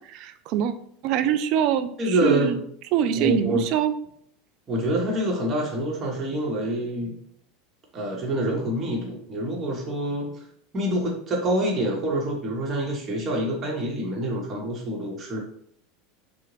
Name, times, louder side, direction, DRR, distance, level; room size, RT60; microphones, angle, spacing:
voice 1, 0.1-0.7 1.0-1.9 2.2-2.6 2.9-3.9, right 10 dB, 50° right, 10 dB, 0.3 m, -23 dB
voice 2, 2.0-2.6 3.1-3.7 4.7-7.2 7.9-10.3 10.7-15.4, right 1 dB, 30° right, -1 dB, 0.9 m, -26 dB
3.6 x 2.0 x 3.0 m, 0.65 s
figure-of-eight pair, 80°, 0 cm